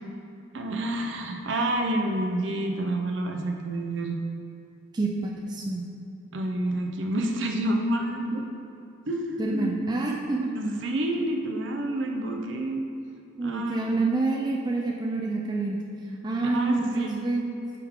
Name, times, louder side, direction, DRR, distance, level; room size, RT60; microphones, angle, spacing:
voice 1, 0.5-4.2 6.3-8.4 9.1-9.7 10.5-12.8 13.4-14.0 16.4-17.2, right 1 dB, 60° right, 3 dB, 0.6 m, -29 dB
voice 2, 4.9-5.8 9.4-10.5 13.4-15.8 16.2-17.5, right 3 dB, 20° right, -1 dB, 0.4 m, -27 dB
9.2 x 3.6 x 3.6 m, 2.6 s
head